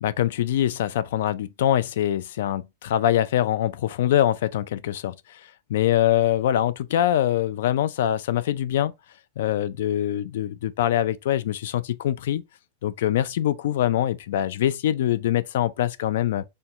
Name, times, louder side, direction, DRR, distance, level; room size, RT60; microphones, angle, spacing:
voice 1, 0.0-5.4 5.7-8.9 9.4-12.4 12.8-16.4, left 11 dB, 65° left, 0.4 m, -24 dB
4.4 x 2.2 x 3.6 m
supercardioid pair, 170°, 0 cm